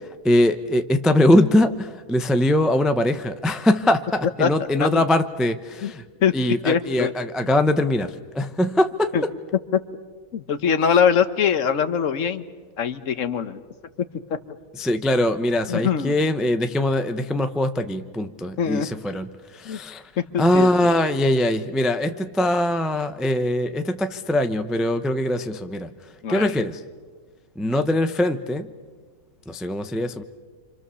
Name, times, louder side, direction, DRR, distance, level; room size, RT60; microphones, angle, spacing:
voice 1, 0.2-6.0 6.3-9.1 14.7-20.0 20.4-25.9 26.3-26.8 27.6-28.7 29.5-30.2, left 1 dB, ahead, 8 dB, 0.4 m, -22 dB
voice 2, 6.6-7.1 9.1-9.2 9.7-9.8 10.3-12.4 12.8-13.6 15.7-16.1 18.6-18.9 19.6-19.8 20.3-20.7 26.2-26.5, left 7 dB, 55° left, 11 dB, 1.3 m, -22 dB
29.0 x 26.0 x 6.9 m, 1.5 s
omnidirectional pair, 1.7 m